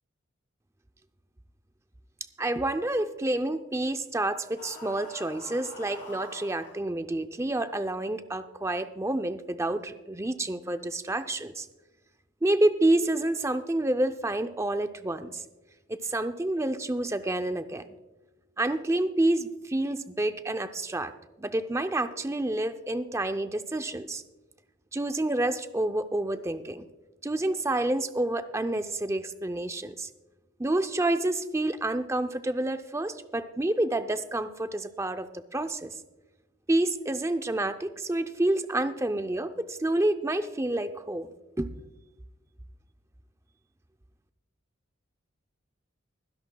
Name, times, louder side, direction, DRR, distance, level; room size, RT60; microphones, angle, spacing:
voice 1, 2.4-11.7 12.4-15.4 15.9-17.8 18.6-21.1 21.4-24.2 24.9-26.9 27.2-30.1 30.6-36.0 36.7-41.3 41.6-41.7, right 1 dB, 15° right, 9 dB, 0.5 m, -28 dB
sound 1, 4.6-6.8, left 2 dB, 50° left, 5.0 m, -45 dB
24.0 x 10.5 x 2.3 m, 1.1 s
head